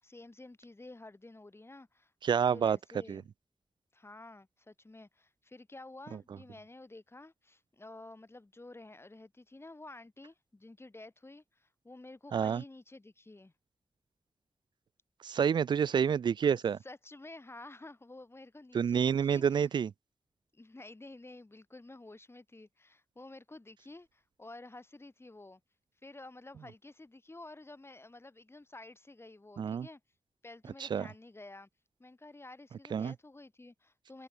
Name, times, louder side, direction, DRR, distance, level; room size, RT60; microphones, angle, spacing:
voice 1, 0.0-3.3 3.9-13.5 15.9-16.0 16.8-19.7 20.5-25.6 26.0-30.0 30.4-31.7 32.0-34.3, left 2 dB, 35° left, 5.8 m, -51 dB
voice 2, 2.2-2.8 3.1-3.2 12.3-12.6 15.2-16.8 18.7-19.9 29.6-29.9 30.8-31.1 32.9-33.1, right 7 dB, 90° right, 0.5 m, -28 dB
cardioid pair, 45°, 8 cm